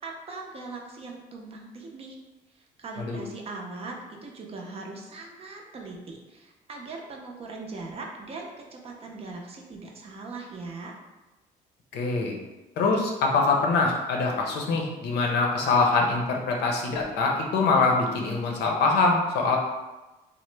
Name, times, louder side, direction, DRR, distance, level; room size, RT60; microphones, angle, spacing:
voice 1, 0.0-2.2 2.5-11.0, right 3 dB, 35° right, 0 dB, 0.5 m, -40 dB
voice 2, 11.9-12.4 12.8-19.6, left 3 dB, 75° left, 1 dB, 0.6 m, -24 dB
2.9 x 2.0 x 3.2 m, 1.1 s
cardioid pair, 110°, 17 cm